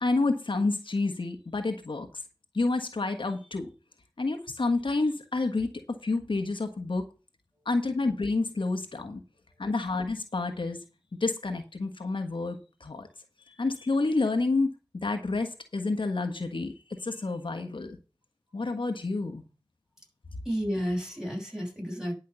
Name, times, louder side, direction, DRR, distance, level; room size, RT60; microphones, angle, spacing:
voice 1, 0.0-2.1 2.5-3.7 4.2-7.0 7.6-9.2 9.6-10.8 11.2-13.1 13.5-14.7 15.0-18.0 18.5-19.4, left 3 dB, 85° left, 6 dB, 1.4 m, -29 dB
voice 2, 20.5-22.1, equal, 5° right, 0 dB, 6.8 m, -32 dB
10.5 x 5.7 x 6.8 m, 0.31 s
wide cardioid pair, 45°, 8 cm